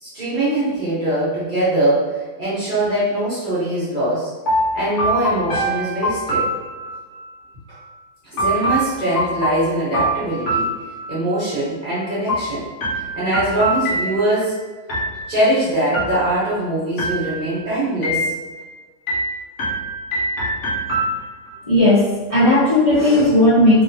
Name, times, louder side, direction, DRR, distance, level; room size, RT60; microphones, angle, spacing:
voice 1, 0.0-4.3 4.7-6.5 8.2-10.7 11.1-12.7 13.1-14.6 15.3-18.3, right 1 dB, 35° right, -10 dB, 1.0 m, -22 dB
sound 1, 4.5-7.2 8.4-11.4 12.3-14.5 14.9-15.5 15.9-16.6 17.0-17.6 18.0-18.7 19.1-21.5, right 1 dB, 55° left, 1.0 m, -24 dB
voice 2, 21.6-22.0 22.3-23.8, left 1 dB, 30° left, -12 dB, 0.7 m, -14 dB
3.2 x 2.8 x 2.7 m, 1.3 s
omnidirectional pair, 1.8 m